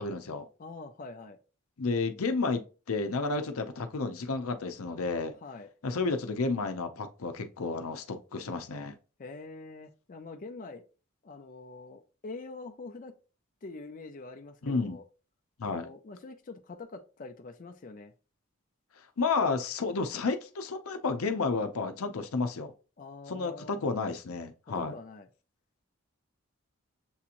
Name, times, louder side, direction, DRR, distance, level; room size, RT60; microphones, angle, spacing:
voice 1, 0.0-0.5 1.8-5.3 5.8-8.9 14.6-15.0 15.6-15.9 19.2-22.7 23.3-24.9, left 4 dB, 90° left, 0.6 m, -31 dB
voice 2, 0.6-1.4 5.4-5.7 9.2-10.8 11.2-13.1 13.6-15.0 15.6-18.1 23.0-23.8 24.8-25.3, left 3 dB, 40° left, 0.5 m, -45 dB
7.1 x 2.8 x 2.5 m
head